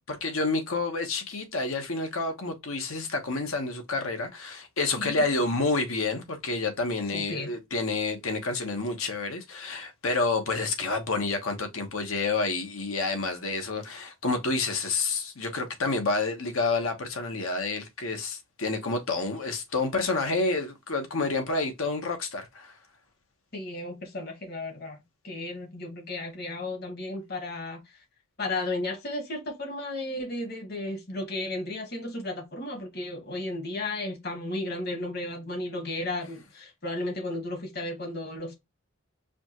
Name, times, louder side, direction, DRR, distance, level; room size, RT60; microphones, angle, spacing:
voice 1, 0.1-22.7, left 3 dB, 75° left, 1.1 m, -29 dB
voice 2, 5.0-5.4 7.1-7.5 23.5-27.8 28.4-38.5, left 2 dB, 45° left, 1.4 m, -34 dB
4.9 x 2.4 x 2.9 m
head